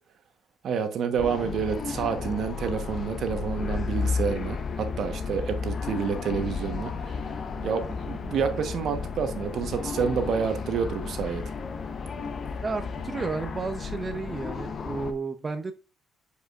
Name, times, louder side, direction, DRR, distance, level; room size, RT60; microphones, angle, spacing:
voice 1, 0.6-6.9 7.6-11.4, right 6 dB, 70° right, 1.0 m, -28 dB
sound 1, 1.2-15.1, left 5 dB, 50° left, 0.7 m, -33 dB
voice 2, 12.6-15.7, right 4 dB, 30° right, 0.7 m, -32 dB
7.9 x 4.9 x 2.4 m
cardioid pair, 90°, 0 cm